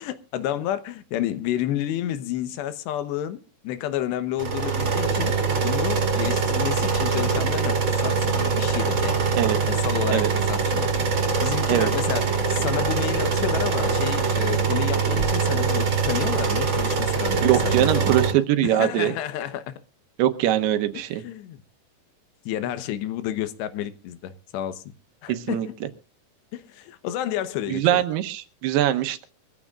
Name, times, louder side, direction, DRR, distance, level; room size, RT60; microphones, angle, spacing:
voice 1, 0.0-9.2 9.6-18.2 18.6-19.7 20.9-21.6 22.5-24.8 25.2-25.7 26.5-28.0, left 11 dB, 85° left, 3.2 m, -30 dB
sound 1, 4.4-18.3, right 5 dB, 35° right, 2.6 m, -23 dB
voice 2, 17.4-19.1 20.2-21.2 25.3-25.7 27.7-29.3, right 12 dB, 80° right, 2.9 m, -22 dB
25.0 x 14.5 x 2.4 m
omnidirectional pair, 4.8 m